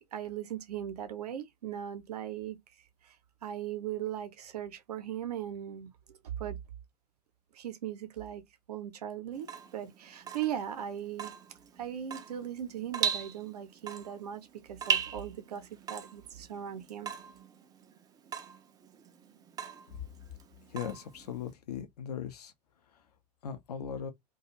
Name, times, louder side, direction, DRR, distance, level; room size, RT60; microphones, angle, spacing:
voice 1, 0.1-2.6 3.0-3.2 3.4-5.9 6.4-6.6 7.5-8.4 8.7-11.3 11.8-17.1, right 10 dB, 70° right, 0.7 m, -38 dB
Water tap faucet / Drip, 9.3-21.5, right 7 dB, 20° right, 0.4 m, -38 dB
voice 2, 20.7-22.5 23.4-24.1, left 8 dB, 70° left, 0.6 m, -38 dB
2.4 x 2.3 x 2.9 m
figure-of-eight pair, 85°, 21 cm